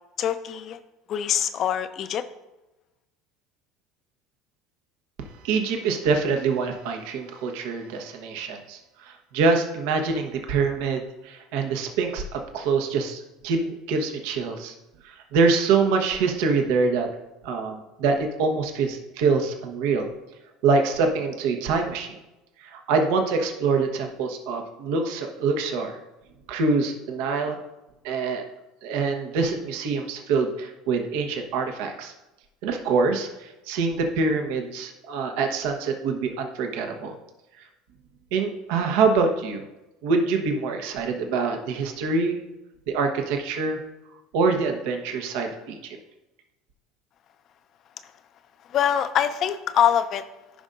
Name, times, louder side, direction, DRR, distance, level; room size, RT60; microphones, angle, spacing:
voice 1, 0.2-0.8 1.1-2.2 48.7-50.2, left 9 dB, 50° left, 10 dB, 0.7 m, -24 dB
voice 2, 5.4-14.7 15.0-17.1 17.4-20.1 20.6-22.2 22.6-26.0 26.5-27.6 28.0-28.4 28.8-32.1 32.6-37.2 38.3-39.6 40.0-42.4 42.9-43.8 44.3-46.0, right 4 dB, 65° right, 4 dB, 1.1 m, -25 dB
15.0 x 5.4 x 2.6 m, 1.0 s
hypercardioid pair, 70°, 0 cm